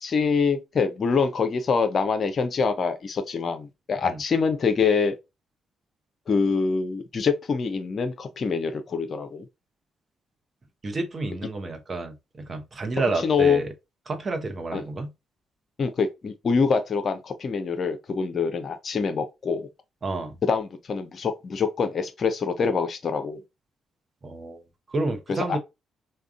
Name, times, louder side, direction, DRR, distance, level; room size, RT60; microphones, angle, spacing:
voice 1, 0.0-5.1 6.3-9.4 13.2-13.6 14.7-14.8 15.8-19.7 20.4-23.4 25.3-25.6, left 5 dB, 50° left, 0.5 m, -25 dB
voice 2, 10.8-13.7 14.1-15.1 20.0-20.3 24.2-24.6 24.9-25.6, right 2 dB, 40° right, 0.7 m, -30 dB
3.5 x 2.2 x 2.4 m
hypercardioid pair, 40°, 0 cm